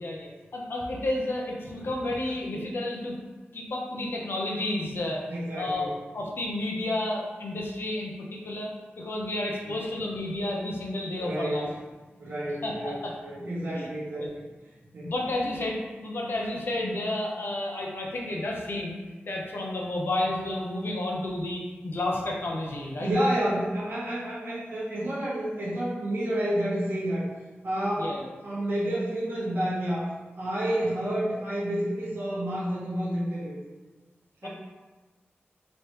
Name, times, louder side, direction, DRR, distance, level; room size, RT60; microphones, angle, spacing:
voice 1, 0.0-3.2 3.5-5.2 5.6-8.7 9.0-11.7 12.6-13.1 13.7-13.9 14.2-14.3 15.0-19.0 19.3-23.1 28.0-28.2 34.4-34.5, left 1 dB, 65° left, -1 dB, 0.7 m, -31 dB
voice 2, 5.3-5.9 9.6-9.8 11.2-11.7 12.2-14.3 14.9-15.1 23.0-27.3 27.6-28.1 28.4-30.1 30.4-33.6 34.4-34.5, right 1 dB, 60° right, -9 dB, 1.0 m, -29 dB
3.1 x 3.0 x 3.0 m, 1.3 s
wide cardioid pair, 75°, 4 cm